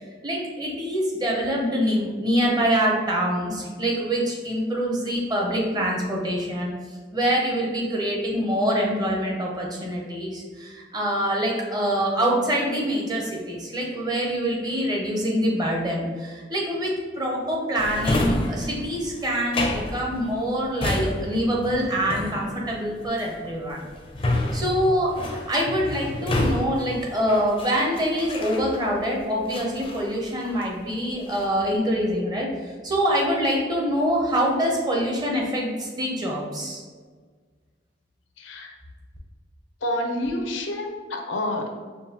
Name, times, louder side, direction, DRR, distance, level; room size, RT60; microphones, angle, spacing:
voice 1, 0.2-6.7 7.1-23.8 24.5-36.8, equal, 20° right, -1 dB, 0.6 m, -25 dB
Drawer open or close, 17.8-29.0 29.5-30.8 31.1-31.6, left 1 dB, 30° left, 0.4 m, -29 dB
voice 2, 38.4-38.7 39.8-41.7, left 1 dB, 90° left, 3 dB, 0.6 m, -28 dB
5.2 x 2.2 x 2.8 m, 1.5 s
head